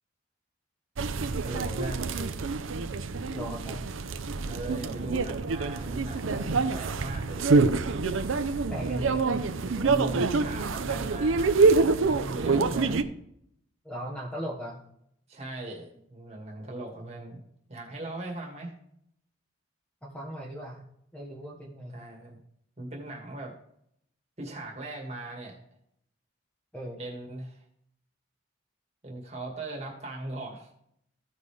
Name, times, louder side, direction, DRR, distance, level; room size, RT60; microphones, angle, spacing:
sound 1, 1.0-13.0, right 4 dB, 80° right, 0.6 m, -26 dB
voice 1, 1.4-2.1 4.4-7.8 8.7-13.1 15.3-17.4 17.7-18.8 21.9-22.4 22.8-23.6 24.4-25.6 27.0-27.6 29.0-30.7, right 2 dB, 30° right, -1 dB, 2.0 m, -39 dB
voice 2, 3.3-3.8 8.7-9.4 13.8-14.8 20.0-20.8 21.1-22.0 26.7-27.0, equal, 5° left, -2 dB, 1.3 m, -38 dB
15.5 x 5.4 x 3.3 m, 0.72 s
head